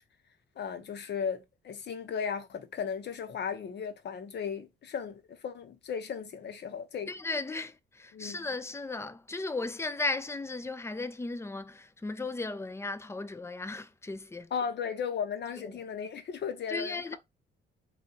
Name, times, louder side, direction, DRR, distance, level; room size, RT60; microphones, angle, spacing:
voice 1, 0.6-7.1 8.1-8.4 14.5-17.2, left 7 dB, 60° left, 1.0 m, -36 dB
voice 2, 7.1-14.5 15.6-15.8 16.7-17.2, left 3 dB, 15° left, 0.5 m, -36 dB
4.1 x 3.1 x 2.8 m
cardioid pair, 90°, 20 cm